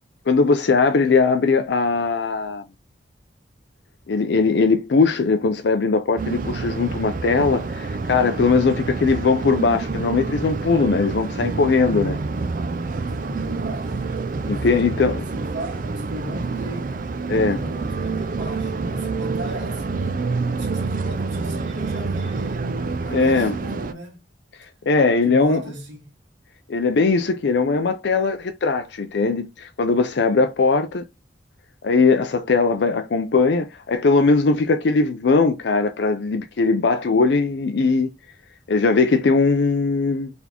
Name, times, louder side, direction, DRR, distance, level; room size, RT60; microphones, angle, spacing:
voice 1, 0.3-2.6 4.1-12.2 14.5-15.2 17.3-17.6 23.1-23.6 24.9-25.6 26.7-31.0 31.8-38.1 38.7-40.3, left 4 dB, 65° left, 0.4 m, -20 dB
sound 1, 6.2-23.9, right 4 dB, 45° right, 0.4 m, -27 dB
voice 2, 13.1-14.0 14.4-16.9 17.5-20.3 20.5-22.7 23.0-24.3 25.2-26.1, right 1 dB, 80° right, 1.6 m, -37 dB
4.0 x 3.5 x 2.9 m
head